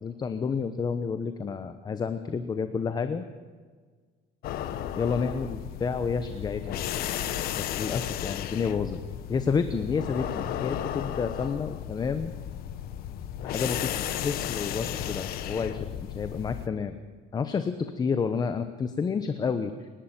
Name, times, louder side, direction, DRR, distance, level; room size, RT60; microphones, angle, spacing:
voice 1, 0.0-3.2 4.9-6.8 7.6-9.0 9.3-12.3 13.4-13.8 14.2-16.9 17.3-19.9, left 5 dB, 25° left, 10 dB, 1.0 m, -30 dB
sound 1, 4.4-16.7, left 11 dB, 65° left, 1.4 m, -34 dB
26.5 x 11.5 x 9.0 m, 1.5 s
cardioid pair, 155°, 17 cm